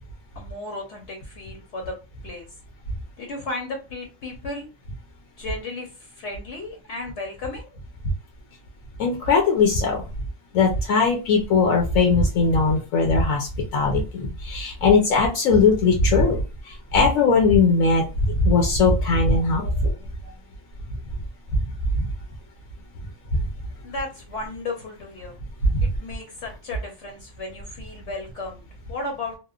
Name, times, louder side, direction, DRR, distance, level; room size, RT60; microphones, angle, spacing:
voice 1, 0.4-2.0 2.2-2.5 3.2-4.7 5.4-7.8 23.8-25.3 25.8-28.6 28.9-29.4, left 2 dB, 65° left, 1 dB, 0.9 m, -34 dB
voice 2, 9.0-10.0 10.5-13.5 13.7-16.4 16.7-19.9 22.0-22.1 25.7-25.8, left 4 dB, 80° left, 1 dB, 1.1 m, -19 dB
3.0 x 2.1 x 2.3 m, 0.31 s
omnidirectional pair, 1.4 m